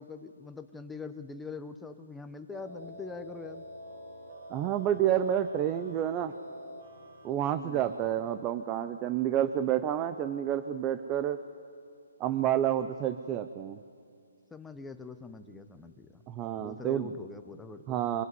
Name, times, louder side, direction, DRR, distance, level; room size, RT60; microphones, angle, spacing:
voice 1, 0.0-3.6 7.5-8.0 14.5-16.2 16.6-18.0, left 4 dB, 5° left, 7 dB, 0.9 m, -43 dB
sound 1, 2.5-8.1, equal, 55° right, 4.1 m, -47 dB
voice 2, 4.5-6.3 7.2-11.4 12.2-13.8 16.3-17.1 17.9-18.2, right 10 dB, 20° right, 10 dB, 0.7 m, -29 dB
24.0 x 20.5 x 9.7 m, 2.4 s
hypercardioid pair, 155°, 0 cm